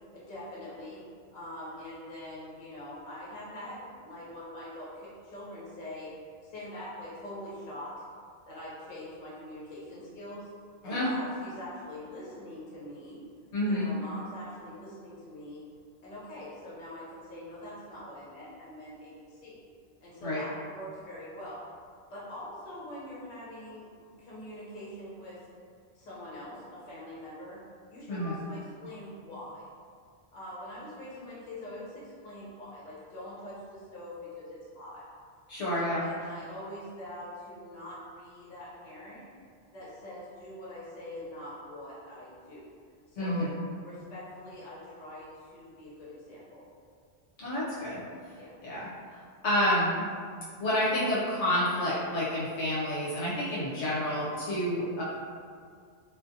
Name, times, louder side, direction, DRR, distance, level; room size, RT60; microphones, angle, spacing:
voice 1, 0.1-1.0 1.3-6.1 6.5-7.9 8.5-10.5 10.8-13.3 13.7-15.6 16.0-19.6 20.0-21.6 22.1-23.9 24.2-25.5 25.9-27.6 27.9-29.7 30.3-35.0 35.6-39.3 39.7-42.7 43.1-43.5 43.8-46.6 48.3-48.5 53.6-53.7, left 1 dB, 45° left, -8 dB, 0.9 m, -43 dB
voice 2, 13.5-13.9 20.2-20.4 28.1-28.4 35.5-36.0 43.2-43.5 47.4-48.0 48.6-48.9 49.1-50.0 50.6-55.0, left 1 dB, 75° left, -8 dB, 0.9 m, -29 dB
2.5 x 2.4 x 2.5 m, 2.1 s
omnidirectional pair, 1.2 m